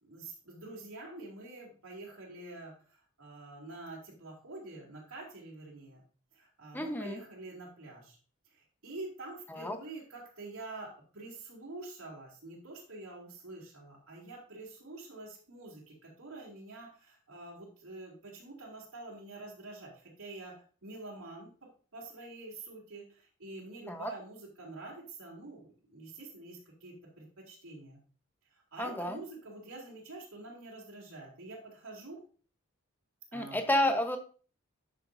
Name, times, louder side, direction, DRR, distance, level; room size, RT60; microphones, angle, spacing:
voice 1, 0.0-2.7 3.2-6.0 6.3-8.2 8.8-21.5 21.9-28.0 28.7-32.2 33.3-33.6, right 2 dB, 80° right, -5 dB, 2.6 m, -46 dB
voice 2, 6.7-7.2 9.5-9.8 23.9-24.1 28.8-29.2 33.3-34.2, left 1 dB, 10° left, 5 dB, 1.0 m, -31 dB
11.0 x 6.0 x 2.7 m, 0.40 s
head